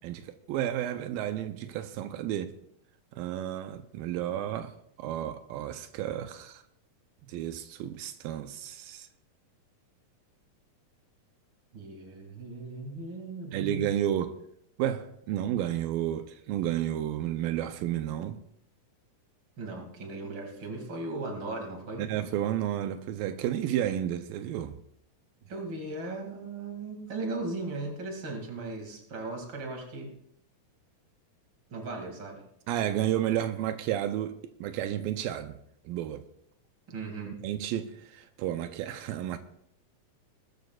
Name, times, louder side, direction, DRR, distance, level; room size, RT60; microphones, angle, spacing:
voice 1, 0.0-2.5 3.1-6.6 7.3-9.1 13.5-14.4 14.8-18.4 22.0-24.8 32.7-35.6 35.9-36.3 37.3-39.4, right 11 dB, 85° right, 2.4 m, -32 dB
voice 2, 11.7-14.0 19.6-22.1 25.4-30.1 31.7-32.4 36.9-37.4, right 2 dB, 35° right, 2.6 m, -37 dB
19.5 x 13.5 x 2.4 m
omnidirectional pair, 4.1 m